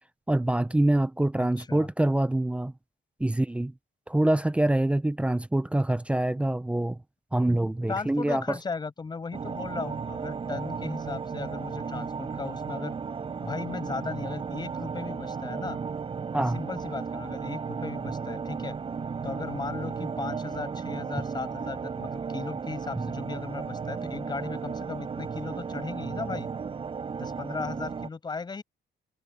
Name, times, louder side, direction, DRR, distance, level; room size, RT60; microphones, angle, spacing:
voice 1, 0.3-2.7 3.2-3.7 4.1-7.0 7.3-8.6 16.3-16.6, right 1 dB, 5° right, 0.6 m, -25 dB
voice 2, 1.4-1.9 7.9-12.9 13.4-15.8 16.3-18.8 19.2-26.5 27.2-28.6, left 4 dB, 25° left, 7.0 m, -36 dB
sound 1, 9.3-28.1, right 5 dB, 30° right, 5.5 m, -34 dB
cardioid pair, 165°, 19 cm